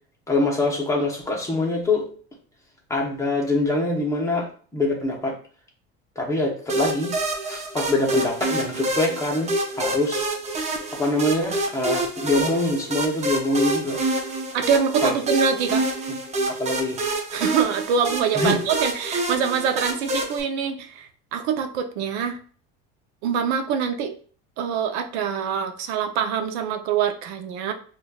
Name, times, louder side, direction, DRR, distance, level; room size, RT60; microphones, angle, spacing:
voice 1, 0.3-2.0 2.9-5.3 6.2-7.1 7.5-10.2 10.9-14.0 15.0-15.1 16.5-17.0 18.4-18.6, left 2 dB, 10° left, -2 dB, 0.9 m, -24 dB
sound 1, 6.7-20.4, right 2 dB, 20° right, 0.5 m, -27 dB
voice 2, 14.5-15.8 17.3-22.4 23.2-24.1 24.6-27.7, right 7 dB, 90° right, 6 dB, 0.6 m, -24 dB
5.0 x 2.5 x 2.3 m, 0.43 s
cardioid pair, 135°, 32 cm